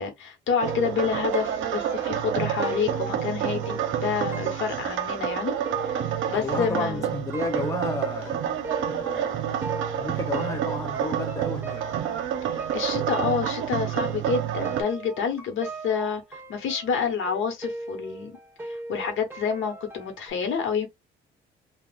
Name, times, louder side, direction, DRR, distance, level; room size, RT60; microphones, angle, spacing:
voice 1, 0.0-5.5 5.8-7.1 12.5-18.3 18.6-20.9, left 6 dB, 75° left, 1.1 m, -28 dB
sound 1, 0.6-14.8, right 9 dB, 80° right, 0.7 m, -29 dB
sound 2, 0.7-9.3 9.6-20.3, right 2 dB, 10° right, 1.0 m, -40 dB
voice 2, 6.3-9.4 9.9-11.9, left 3 dB, 15° left, 0.6 m, -33 dB
3.5 x 2.3 x 2.3 m
cardioid pair, 90°, 20 cm